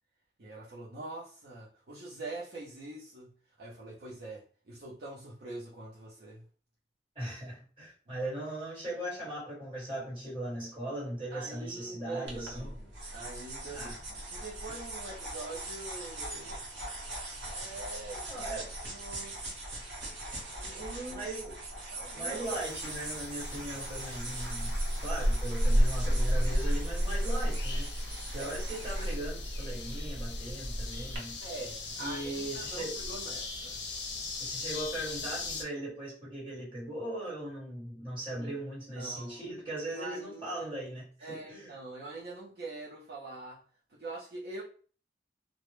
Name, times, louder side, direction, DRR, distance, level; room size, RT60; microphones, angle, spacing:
voice 1, 0.4-6.4 8.1-8.3 11.3-16.6 17.5-18.5 18.8-19.7 20.5-21.2 21.9-22.5 28.3-28.5 31.4-33.8 38.4-38.5 39.0-39.4 39.8-40.7 41.2-43.6 43.9-44.6, right 2 dB, 60° right, 0.5 m, -44 dB
voice 2, 7.1-12.8 13.7-13.9 18.3-18.7 21.1-21.6 22.1-24.7 25.0-28.0 28.3-31.4 32.0-33.0 34.4-41.8, right 1 dB, 30° right, 1.2 m, -39 dB
sound 1, 12.3-31.2, right 1 dB, 85° right, 0.8 m, -41 dB
sound 2, 22.4-35.6, equal, 75° left, 0.5 m, -33 dB
2.0 x 2.0 x 3.0 m
head